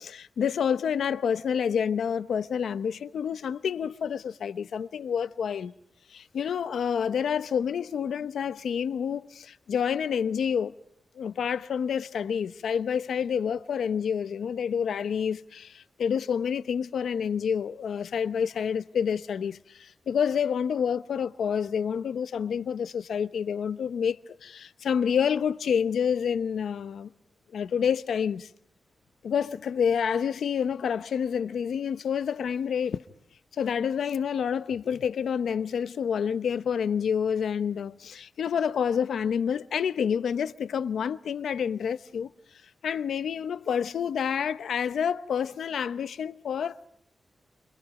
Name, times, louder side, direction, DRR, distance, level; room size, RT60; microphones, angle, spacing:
voice 1, 0.0-5.7 6.1-10.7 11.2-27.1 27.5-28.5 29.2-33.0 33.6-42.3 42.8-46.9, left 7 dB, 90° left, 0.9 m, -28 dB
30.0 x 28.5 x 4.9 m
cardioid pair, 90°, 0 cm